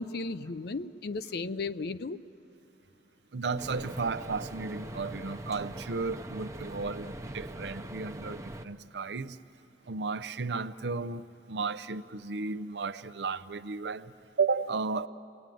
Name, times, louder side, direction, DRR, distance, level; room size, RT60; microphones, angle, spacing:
voice 1, 0.0-2.2, left 3 dB, 60° left, 0.6 m, -35 dB
voice 2, 3.3-9.4 9.9-11.2 11.5-14.1 14.4-15.1, right 4 dB, 75° right, 0.6 m, -33 dB
sound 1, 3.6-8.6, right 1 dB, 15° right, 0.7 m, -42 dB
28.5 x 20.5 x 9.2 m
head